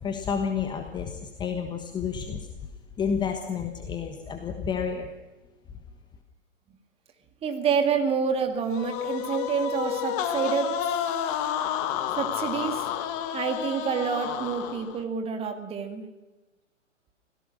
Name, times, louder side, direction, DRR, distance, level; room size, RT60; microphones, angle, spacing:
voice 1, 0.0-2.5 3.0-5.1, left 6 dB, 10° left, 5 dB, 1.3 m, -30 dB
voice 2, 7.4-10.7 12.2-12.9 13.3-16.1, right 6 dB, 15° right, 6 dB, 2.1 m, -28 dB
sound 1, 8.7-15.0, left 10 dB, 30° left, 1.8 m, -30 dB
26.0 x 17.0 x 6.5 m, 1.1 s
figure-of-eight pair, 125°, 38 cm